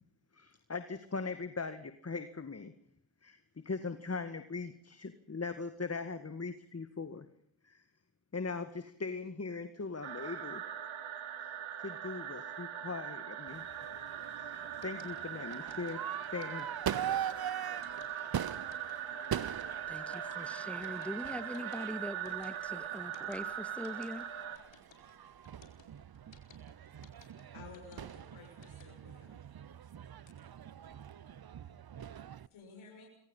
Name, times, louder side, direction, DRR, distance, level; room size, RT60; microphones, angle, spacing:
voice 1, 0.3-2.7 3.2-3.4 3.6-7.3 7.6-7.8 8.3-10.6 11.4-11.5 11.8-13.6 14.4-14.6 14.8-16.0 16.3-16.7, left 4 dB, 30° left, 10 dB, 2.0 m, -40 dB
sound 1, 10.0-24.6, right 9 dB, 80° right, 3.1 m, -41 dB
Crowd / Fireworks, 13.5-32.5, right 9 dB, 50° right, 1.0 m, -43 dB
sound 2, 14.8-28.8, left 7 dB, 65° left, 4.8 m, -60 dB
voice 2, 19.9-24.3, equal, 5° left, 12 dB, 2.2 m, -42 dB
voice 3, 27.5-29.4 31.4-31.5 32.5-33.1, left 4 dB, 80° left, 1 dB, 6.6 m, -53 dB
27.0 x 23.5 x 5.6 m, 0.67 s
cardioid pair, 55°, 47 cm